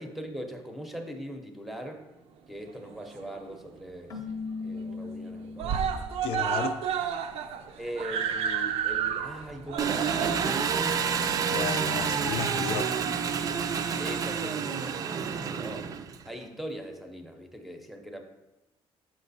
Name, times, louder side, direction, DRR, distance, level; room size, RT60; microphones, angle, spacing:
voice 1, 0.0-2.1 2.5-4.2 4.6-5.9 7.8-10.8 14.0-15.9 16.3-18.2, equal, ahead, 0.7 m, -40 dB
Screaming, 2.7-3.6 4.0-4.1 4.4-4.5 4.8-5.3 5.6-12.4 13.2-13.3, right 8 dB, 90° right, 0.5 m, -32 dB
Keyboard (musical), 4.1-6.1, left 4 dB, 35° left, 0.7 m, -38 dB
voice 2, 6.2-6.8 11.5-13.0, left 8 dB, 70° left, 0.4 m, -33 dB
Engine, 9.8-16.3, right 6 dB, 35° right, 0.4 m, -29 dB
6.1 x 6.0 x 4.1 m
cardioid pair, 175°, 10 cm